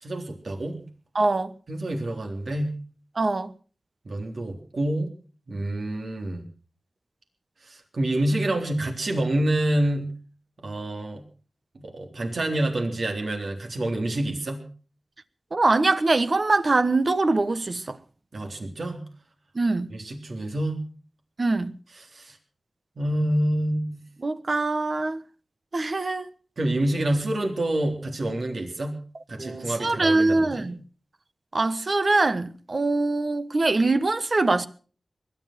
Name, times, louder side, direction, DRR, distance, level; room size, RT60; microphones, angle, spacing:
voice 1, 0.0-0.9 1.7-2.8 4.1-5.1 5.5-6.5 7.6-10.1 10.6-11.2 11.7-14.7 18.3-19.1 19.9-20.8 22.1-22.4 23.0-24.0 26.6-29.0 29.3-30.7, right 1 dB, 70° right, 3.7 m, -27 dB
voice 2, 1.1-1.5 3.2-3.5 15.5-18.0 19.5-19.9 21.4-21.7 24.2-25.2 25.7-26.3 29.4-30.8 31.5-34.7, right 2 dB, 50° right, 1.1 m, -23 dB
21.0 x 11.0 x 5.9 m
wide cardioid pair, 65°, 0 cm